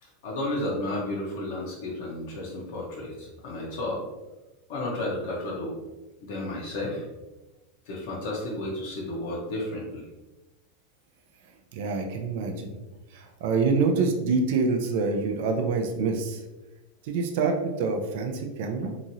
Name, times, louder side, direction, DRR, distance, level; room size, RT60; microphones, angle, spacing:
voice 1, 0.0-4.0 4.7-5.8 6.2-7.1 7.9-10.0, left 1 dB, 65° left, -4 dB, 0.7 m, -32 dB
voice 2, 11.7-12.8 13.1-16.4 17.0-18.9, right 4 dB, 65° right, 3 dB, 0.4 m, -26 dB
2.9 x 2.5 x 2.6 m, 1.1 s
supercardioid pair, 140°, 0 cm